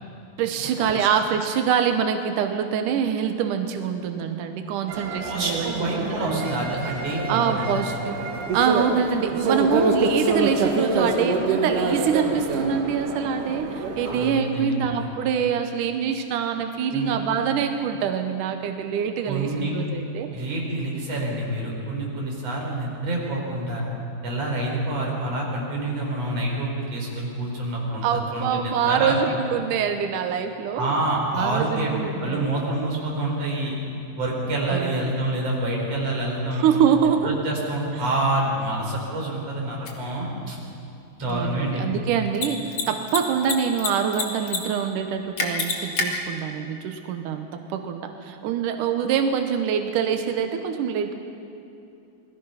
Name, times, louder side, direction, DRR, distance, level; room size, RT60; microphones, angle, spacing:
voice 1, 0.4-6.6 7.3-8.1 8.5-20.5 28.0-30.9 31.3-32.5 34.7-35.2 36.5-37.3 37.9-38.0 41.3-51.2, right 7 dB, 80° right, 6 dB, 1.8 m, -25 dB
sound 1, 4.9-14.3, right 3 dB, 55° right, 2.7 m, -26 dB
voice 2, 5.2-7.7 14.0-15.1 16.9-17.2 19.3-19.7 20.3-23.8 24.2-28.1 28.3-29.2 30.8-33.7 34.2-36.7 37.2-40.6 41.2-41.8, right 1 dB, 35° right, -2 dB, 5.2 m, -27 dB
Mechanisms, 39.8-39.9 42.3-42.5 42.7-42.8 43.1-43.9 44.1-44.6 44.8-44.9 45.4-46.0, left 5 dB, 45° left, 2.5 m, -25 dB
28.5 x 20.5 x 5.8 m, 2.7 s
omnidirectional pair, 5.2 m